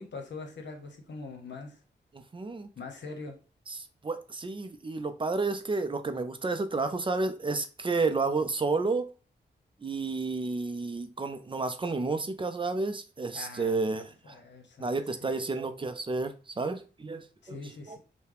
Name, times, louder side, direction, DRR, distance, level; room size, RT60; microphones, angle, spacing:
voice 1, 0.0-1.8 2.8-3.4 13.3-14.9 15.2-15.3 15.6-15.7 17.4-18.0, left 3 dB, 80° left, 1.0 m, -43 dB
voice 2, 2.1-2.7 3.7-9.1 9.8-14.4 14.8-17.6 17.9-18.0, right 3 dB, 30° right, 0.5 m, -31 dB
5.6 x 2.1 x 3.4 m
wide cardioid pair, 125°, 18 cm